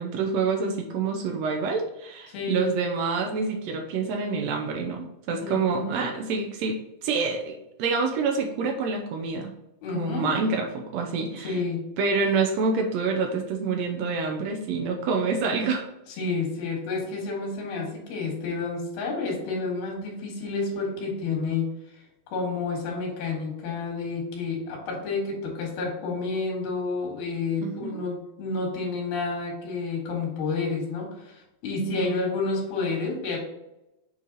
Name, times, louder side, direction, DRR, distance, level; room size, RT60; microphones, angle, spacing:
voice 1, 0.0-9.5 9.9-11.6 12.0-15.8 27.6-28.0 31.9-32.1, right 4 dB, 90° right, 3 dB, 1.5 m, -27 dB
voice 2, 2.3-2.7 5.4-6.1 9.8-10.4 11.4-11.8 16.2-21.7 22.3-33.4, left 4 dB, 90° left, -1 dB, 3.7 m, -30 dB
8.4 x 3.2 x 4.0 m, 0.90 s
omnidirectional pair, 4.1 m